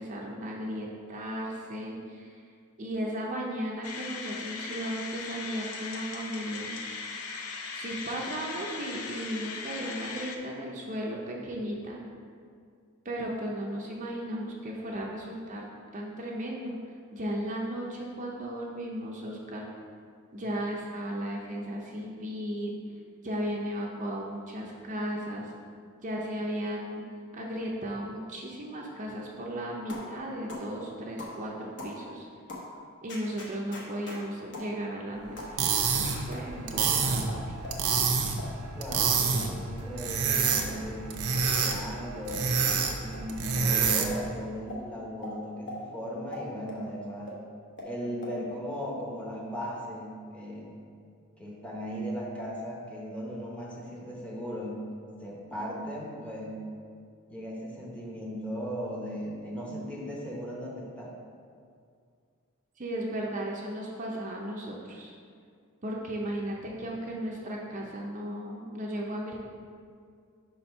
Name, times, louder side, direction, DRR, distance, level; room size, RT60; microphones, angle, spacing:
voice 1, 0.0-2.4 2.8-6.7 7.7-12.0 13.0-15.7 15.9-16.8 17.1-19.7 20.3-22.8 23.2-25.5 26.0-27.0 27.3-32.3 33.0-37.4 62.8-65.1 65.8-69.4, equal, 35° right, -2 dB, 0.6 m, -35 dB
sound 1, 3.8-10.4, left 4 dB, 70° left, 0.6 m, -39 dB
sound 2, 29.9-30.1 30.5-30.7 31.2-31.4 31.8-32.0 32.5-32.7 33.1-34.2 34.5-34.7 35.4-35.6 36.0-36.4 37.0-37.8 38.3-38.5 39.0-39.5 39.8-40.8 41.3-41.8 42.2-42.4 42.7-42.8 43.1-43.2 43.6-43.7 44.1-44.2 44.7-44.8 45.2-45.3 45.7-45.8 46.3-46.8 47.3-47.4 47.8-47.9 48.2-48.3, left 2 dB, 50° left, 1.2 m, -42 dB
sound 3, 35.4-44.3, right 5 dB, 75° right, 0.7 m, -28 dB
voice 2, 38.7-41.2 41.6-42.6 43.0-47.4 47.8-50.7 51.4-54.8 55.2-56.6 57.3-61.1, equal, 5° left, -4 dB, 1.0 m, -37 dB
5.3 x 4.3 x 5.3 m, 2.3 s
head